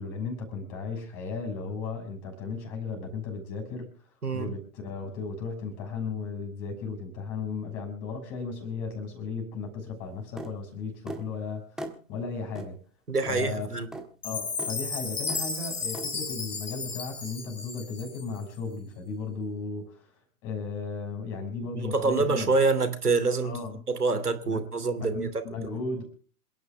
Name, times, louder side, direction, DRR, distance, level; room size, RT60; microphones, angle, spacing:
voice 1, 0.0-3.9 4.3-11.8 12.1-12.8 13.3-13.8 14.2-20.1 20.4-22.5 23.4-23.8 24.4-24.6 24.9-26.0, left 4 dB, 30° left, 6.2 m, -35 dB
sound 1, 10.4-10.5 11.1-11.3 11.8-12.0 12.5-12.7 13.2-13.4 13.9-14.1 14.6-14.8 15.3-15.5 15.9-16.1, right 1 dB, ahead, 1.5 m, -38 dB
voice 2, 13.1-13.9 21.7-23.5 23.9-25.3, right 3 dB, 75° right, 2.9 m, -26 dB
Chime, 14.2-18.4, left 4 dB, 70° left, 3.6 m, -34 dB
27.5 x 11.0 x 3.4 m
figure-of-eight pair, 115°, 46 cm